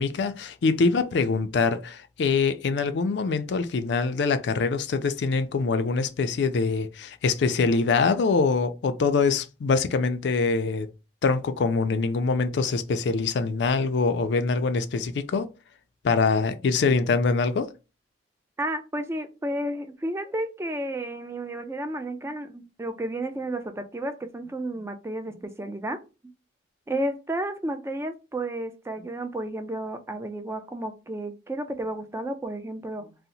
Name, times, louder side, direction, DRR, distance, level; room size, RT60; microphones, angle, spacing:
voice 1, 0.0-10.9 11.2-15.5 16.0-17.7, left 4 dB, 65° left, 0.4 m, -24 dB
voice 2, 18.6-26.0 26.9-33.2, right 1 dB, 15° right, 0.3 m, -32 dB
2.7 x 2.0 x 3.9 m
head